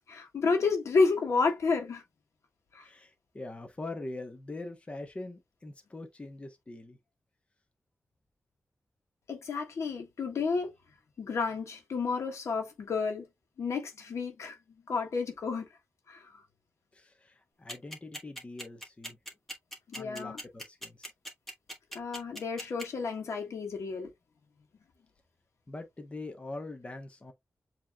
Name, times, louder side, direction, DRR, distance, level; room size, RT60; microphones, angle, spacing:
voice 1, 0.1-2.0 2.7-2.9 9.3-10.7 11.2-13.3 13.6-14.6 14.9-15.7 16.1-16.3 19.9-20.4 21.9-24.1, left 4 dB, 85° left, 1.4 m, -30 dB
voice 2, 2.8-7.0 16.9-19.2 19.9-21.1 25.7-27.3, left 2 dB, 25° left, 0.8 m, -43 dB
sound 1, 17.7-22.8, equal, 5° left, 1.5 m, -40 dB
7.3 x 2.9 x 2.2 m
wide cardioid pair, 130°, 5 cm